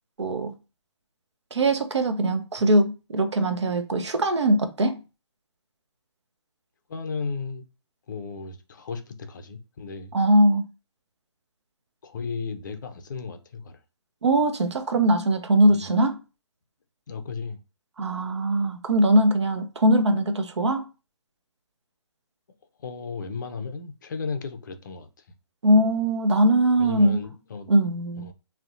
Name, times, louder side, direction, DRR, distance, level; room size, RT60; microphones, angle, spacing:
voice 1, 0.2-0.5 1.5-5.0 10.1-10.6 14.2-16.2 18.0-20.9 25.6-27.2 27.7-28.3, right 1 dB, 70° right, 0.5 m, -21 dB
voice 2, 6.9-7.6 8.1-10.1 12.0-13.8 15.7-15.9 17.1-17.6 22.8-25.1 26.8-27.7 28.2-28.3, left 5 dB, 40° left, 0.5 m, -34 dB
2.7 x 2.1 x 2.4 m
figure-of-eight pair, 150°, 15 cm